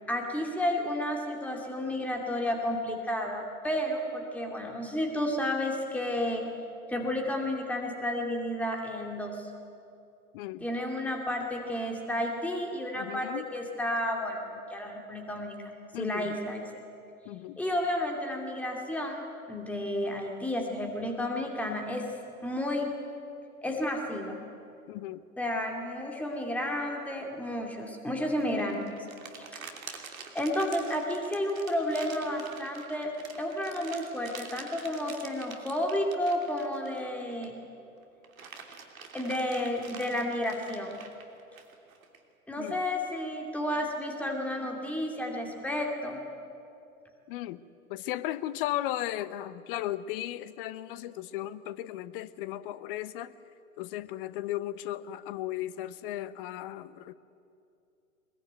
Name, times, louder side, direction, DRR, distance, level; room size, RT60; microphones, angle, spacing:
voice 1, 0.1-6.4 6.9-9.5 10.6-16.6 17.6-22.1 22.4-22.9 23.6-24.3 25.4-28.8 30.3-33.1 33.4-37.5 39.1-40.9 42.5-46.2, left 1 dB, 5° left, 1 dB, 2.5 m, -31 dB
voice 2, 10.3-10.7 12.9-13.5 15.9-16.3 17.2-17.6 24.9-25.2 42.6-42.8 47.3-47.6 47.9-53.3 53.8-57.1, left 14 dB, 35° left, 16 dB, 0.9 m, -36 dB
sound 1, 28.4-37.6 38.0-42.2, right 5 dB, 65° right, 3.0 m, -46 dB
22.0 x 22.0 x 9.3 m, 2.6 s
figure-of-eight pair, 105°, 44 cm